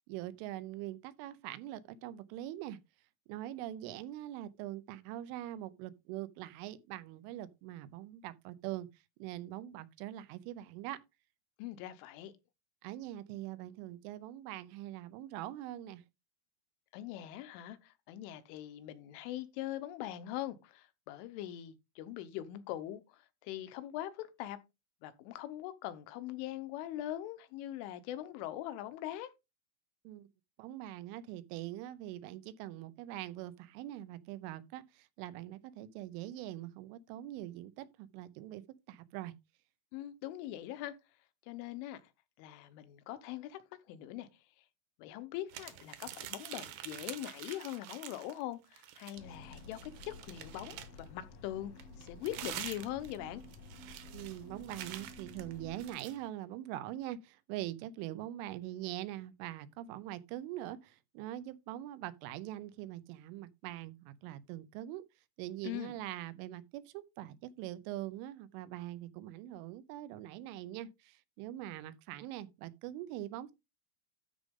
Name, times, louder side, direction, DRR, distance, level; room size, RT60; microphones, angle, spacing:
voice 1, 0.0-2.8 3.3-8.9 9.2-11.0 12.8-16.0 30.0-30.3 30.6-39.3 54.1-65.0 65.4-73.5, right 14 dB, 85° right, 3.2 m, -43 dB
voice 2, 11.6-12.3 16.9-24.6 25.0-29.3 39.9-41.0 41.5-42.0 42.4-43.6 43.9-44.3 45.0-51.7 52.0-53.4 65.6-66.0, left 13 dB, 85° left, 3.3 m, -42 dB
sound 1, 45.5-48.4 48.7-51.1 51.8-56.2, right 12 dB, 70° right, 2.6 m, -46 dB
sound 2, 49.1-55.9, left 2 dB, 60° left, 1.6 m, -52 dB
13.0 x 5.1 x 3.6 m
omnidirectional pair, 5.5 m